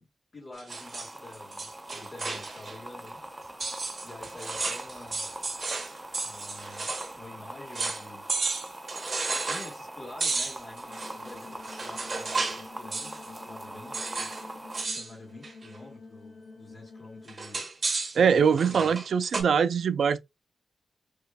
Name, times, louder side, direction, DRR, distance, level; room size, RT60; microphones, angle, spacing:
voice 1, 0.0-3.4 4.0-5.3 6.2-8.2 9.4-14.3 14.9-17.7 18.5-19.0, left 2 dB, 35° left, 1.7 m, -48 dB
sound 1, 0.6-2.8 3.1-3.2 3.6-7.1 7.4-7.5 7.7-8.0 8.3-9.7 10.2-12.7 12.9-13.3 13.9-14.5 14.7-15.1 15.4-15.8 17.3-19.4, right 3 dB, 40° right, 1.2 m, -33 dB
sound 2, 0.7-14.8, right 1 dB, 10° right, 0.4 m, -43 dB
sound 3, 10.9-17.3, left 3 dB, 65° left, 2.4 m, -49 dB
voice 2, 18.1-20.2, right 6 dB, 85° right, 0.3 m, -23 dB
5.5 x 3.0 x 2.2 m
wide cardioid pair, 150°, 0 cm